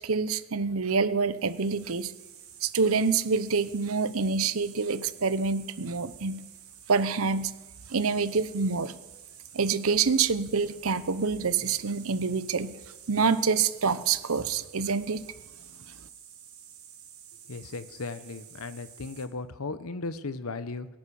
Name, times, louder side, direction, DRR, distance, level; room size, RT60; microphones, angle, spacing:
voice 1, 0.0-2.1 2.6-6.4 6.9-7.5 7.9-8.9 9.5-12.7 13.1-15.2, right 5 dB, 75° right, 14 dB, 0.8 m, -26 dB
sound 1, 1.3-19.2, right 9 dB, 90° right, 3.6 m, -50 dB
voice 2, 17.5-20.9, left 3 dB, 80° left, 13 dB, 0.9 m, -36 dB
17.5 x 10.5 x 7.0 m, 1.2 s
head